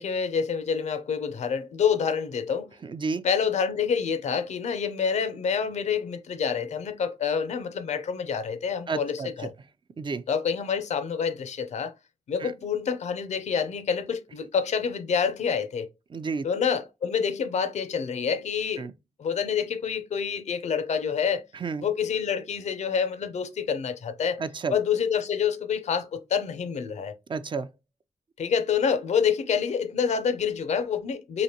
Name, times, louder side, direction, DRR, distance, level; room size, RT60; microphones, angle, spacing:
voice 1, 0.0-2.7 3.2-9.5 10.3-11.9 12.3-15.9 16.4-18.9 19.2-21.5 21.8-24.4 24.7-27.1 28.4-31.4, left 6 dB, 85° left, 0.5 m, -27 dB
voice 2, 2.8-3.2 8.9-9.3 10.0-10.2 12.4-12.5 16.1-16.5 18.8-18.9 21.6-21.8 24.4-24.8 27.3-27.7, right 4 dB, 45° right, 0.4 m, -31 dB
4.9 x 2.5 x 2.8 m
cardioid pair, 70°, 11 cm